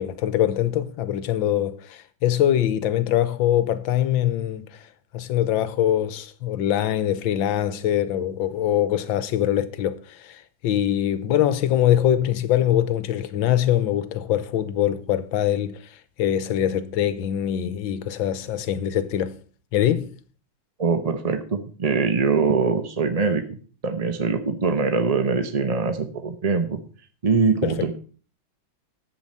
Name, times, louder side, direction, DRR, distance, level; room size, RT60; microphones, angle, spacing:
voice 1, 0.0-4.9 5.1-19.3 19.7-20.1, left 11 dB, 90° left, 1.6 m, -23 dB
voice 2, 20.8-23.4 23.8-26.8 27.2-27.9, right 4 dB, 40° right, 0.5 m, -23 dB
10.5 x 8.0 x 5.6 m
omnidirectional pair, 2.1 m